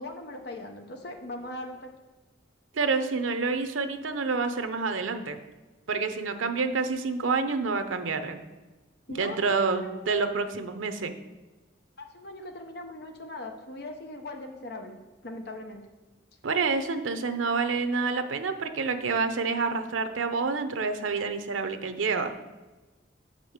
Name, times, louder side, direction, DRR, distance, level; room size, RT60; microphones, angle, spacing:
voice 1, 0.0-1.9 9.1-10.2 12.0-15.8, left 1 dB, 55° left, 4 dB, 0.8 m, -40 dB
voice 2, 2.7-5.4 5.9-8.4 9.1-11.1 16.4-22.3, right 4 dB, 90° right, 8 dB, 0.7 m, -28 dB
6.2 x 5.2 x 6.5 m, 1.2 s
head